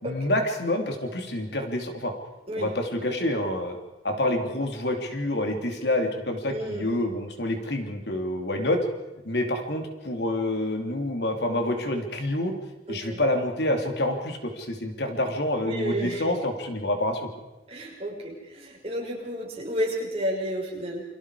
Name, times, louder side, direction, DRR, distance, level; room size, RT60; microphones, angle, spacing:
voice 1, 0.0-2.1 2.6-3.8 4.0-8.8 9.2-12.5 12.9-17.3, left 1 dB, 70° left, 4 dB, 3.1 m, -27 dB
voice 2, 6.5-6.9 12.9-13.2 15.6-16.2 17.7-21.0, equal, 35° right, -2 dB, 6.1 m, -31 dB
29.0 x 24.5 x 5.0 m, 1.0 s
head